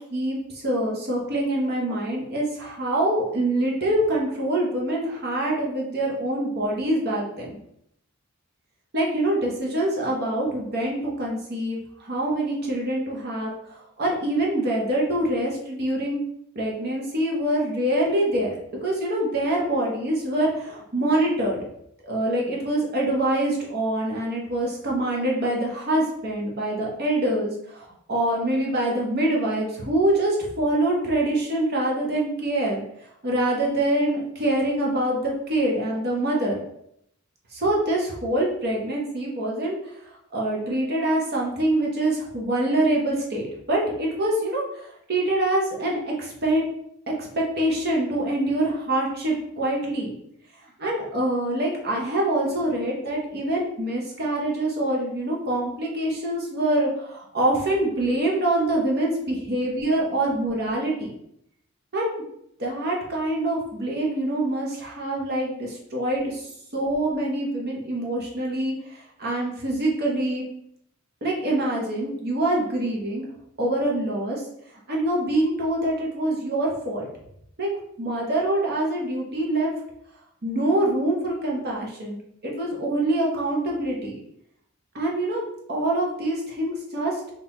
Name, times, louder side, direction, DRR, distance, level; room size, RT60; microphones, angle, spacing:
voice 1, 0.1-7.5 8.9-16.2 16.5-18.5 18.8-21.6 22.0-32.8 33.2-36.6 37.5-39.8 40.3-46.6 47.1-50.1 50.8-61.1 61.9-62.2 62.6-70.4 71.2-73.2 73.6-74.4 74.9-77.1 77.6-77.7 78.0-79.7 80.4-82.2 82.4-84.1 84.9-87.2, right 1 dB, 50° right, -2 dB, 0.9 m, -25 dB
3.8 x 2.9 x 3.0 m, 0.75 s
head